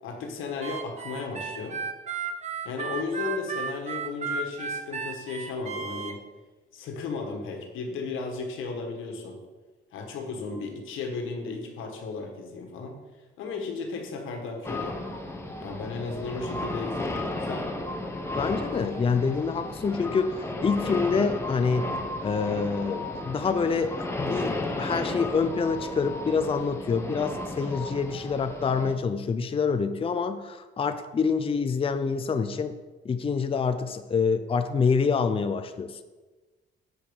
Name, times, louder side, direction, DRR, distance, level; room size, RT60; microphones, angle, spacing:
voice 1, 0.0-1.8 2.6-6.2 6.7-9.4 9.9-12.9 13.4-15.0 15.6-17.7, left 4 dB, 85° left, 3 dB, 1.5 m, -35 dB
Harmonica, 0.6-6.1, right 5 dB, 35° right, 1.0 m, -34 dB
sound 1, 14.6-28.9, left 2 dB, 15° left, 1.1 m, -34 dB
voice 2, 18.4-21.9 22.2-32.7 33.0-36.0, left 5 dB, 30° left, 9 dB, 0.5 m, -26 dB
7.8 x 5.2 x 6.3 m, 1.2 s
cardioid pair, 90°, 20 cm